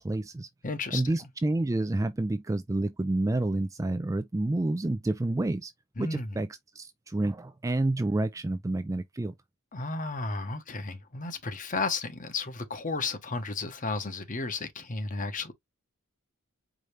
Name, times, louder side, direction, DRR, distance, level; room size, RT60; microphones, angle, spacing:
voice 1, 0.0-0.5 0.9-5.7 6.0-6.5 6.8-9.3, right 2 dB, 15° right, 0.3 m, -29 dB
voice 2, 0.6-1.1 6.0-6.4 9.7-15.5, left 3 dB, 35° left, 1.0 m, -33 dB
5.0 x 2.7 x 3.2 m
head